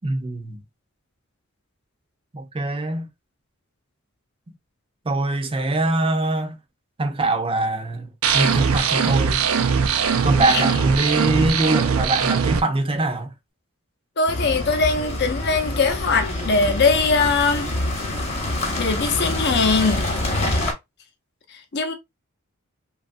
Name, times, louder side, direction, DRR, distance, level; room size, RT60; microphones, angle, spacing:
voice 1, 0.0-0.6 2.3-3.1 5.0-6.6 7.0-9.4 10.2-13.3, right 2 dB, 25° right, 0.5 m, -23 dB
sound 1, 8.2-12.6, right 6 dB, 85° right, 0.5 m, -20 dB
voice 2, 14.2-17.7 18.8-20.1 21.5-21.9, left 4 dB, 55° left, 0.6 m, -21 dB
sound 2, 14.3-20.7, left 1 dB, 30° left, 0.9 m, -26 dB
2.9 x 2.4 x 2.5 m
head